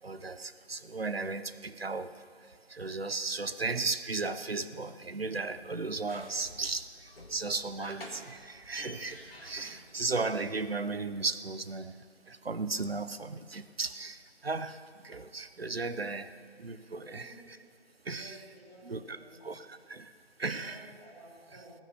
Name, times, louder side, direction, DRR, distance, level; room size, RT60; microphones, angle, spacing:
voice 1, 0.0-2.1 2.7-12.0 12.3-16.3 16.6-17.6 18.1-18.4 18.8-20.1 20.4-20.9, right 3 dB, 60° right, 12 dB, 0.7 m, -35 dB
sound 1, 5.5-10.5, left 1 dB, 55° left, 2.1 m, -50 dB
voice 2, 18.1-19.4 20.6-21.7, right 1 dB, 25° right, -13 dB, 3.4 m, -53 dB
19.0 x 7.5 x 6.7 m, 2.1 s
figure-of-eight pair, 175°, 35 cm